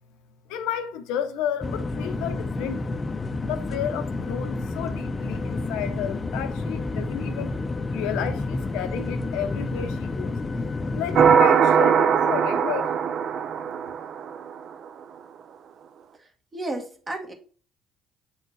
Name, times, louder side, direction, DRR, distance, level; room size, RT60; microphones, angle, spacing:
voice 1, 0.5-3.0 3.4-7.5 7.9-10.4 10.9-12.9, left 9 dB, 70° left, 0.6 m, -32 dB
sound 1, 1.6-11.4, left 2 dB, 30° left, 0.5 m, -30 dB
sound 2, 11.2-14.6, right 7 dB, 55° right, 0.5 m, -20 dB
voice 2, 16.2-17.3, right 2 dB, 30° right, 1.8 m, -33 dB
7.8 x 4.1 x 3.1 m
hypercardioid pair, 50°, 0 cm